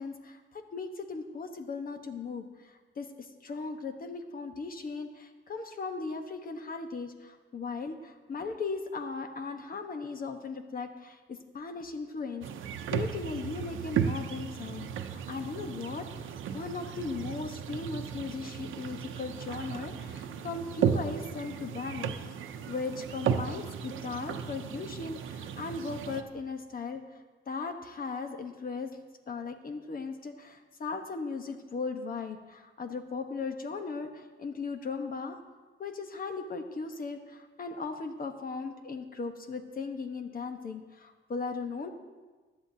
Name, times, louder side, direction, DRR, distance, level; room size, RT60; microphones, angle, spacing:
voice 1, 0.0-12.5 12.9-27.0 27.5-29.0 29.3-35.4 35.8-41.9, left 4 dB, 45° left, 6 dB, 1.1 m, -38 dB
sound 1, 12.4-26.2, right 8 dB, 90° right, 0.7 m, -35 dB
15.5 x 11.0 x 2.8 m, 1.3 s
cardioid pair, 100°, 20 cm